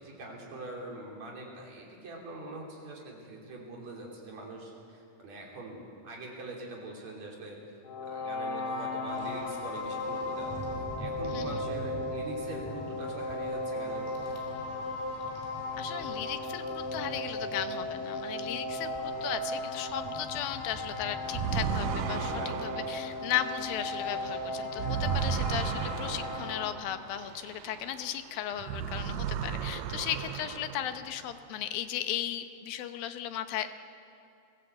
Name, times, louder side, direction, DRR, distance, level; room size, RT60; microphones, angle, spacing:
voice 1, 0.0-7.6 8.0-14.4 22.3-23.2, right 2 dB, 50° right, -1 dB, 4.2 m, -44 dB
sound 1, 7.8-26.7, left 2 dB, 45° left, 2.5 m, -36 dB
Rain, 9.1-25.4, right 1 dB, 10° left, 2.9 m, -47 dB
voice 2, 15.8-33.8, left 11 dB, 80° left, 9 dB, 2.7 m, -36 dB
sound 2, 21.3-28.2 28.5-31.2, right 8 dB, 80° right, 2.3 m, -35 dB
21.5 x 16.5 x 8.0 m, 2.6 s
omnidirectional pair, 4.2 m